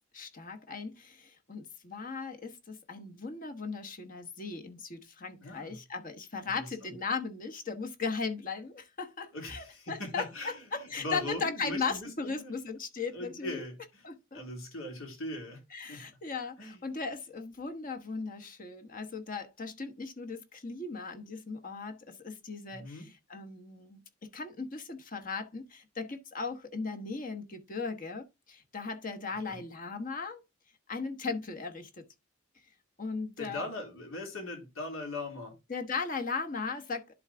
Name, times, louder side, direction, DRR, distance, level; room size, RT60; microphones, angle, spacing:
voice 1, 0.1-13.6 14.0-14.4 15.7-23.0 23.3-24.0 24.3-30.4 30.9-32.0 33.0-33.7 35.7-37.1, left 4 dB, 40° left, 1.1 m, -37 dB
voice 2, 5.4-5.8 6.6-6.9 9.3-12.5 13.1-14.0 14.3-15.6 15.9-16.0 16.6-16.8 22.7-23.1 29.5-29.6 33.4-35.5, left 2 dB, 80° left, 3.1 m, -40 dB
11.0 x 3.8 x 3.4 m
head